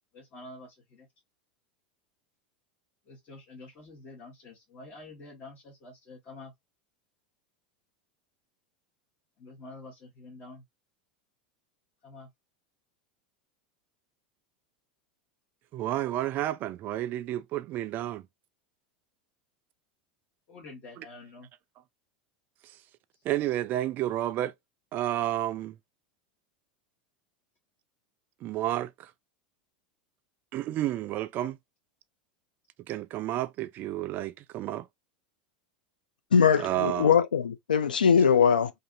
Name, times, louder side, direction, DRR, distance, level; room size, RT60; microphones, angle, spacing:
voice 1, 0.1-1.1 3.1-6.5 9.4-10.6 12.0-12.3 20.5-21.5, left 2 dB, 40° left, 1.0 m, -47 dB
voice 2, 15.7-18.2 23.2-24.5 24.9-25.7 28.4-29.1 30.5-31.6 32.9-34.9 36.6-37.2, right 13 dB, 45° right, 0.3 m, -31 dB
voice 3, 36.3-38.7, left 7 dB, 85° left, 0.4 m, -21 dB
2.6 x 2.6 x 2.4 m
hypercardioid pair, 85°, 5 cm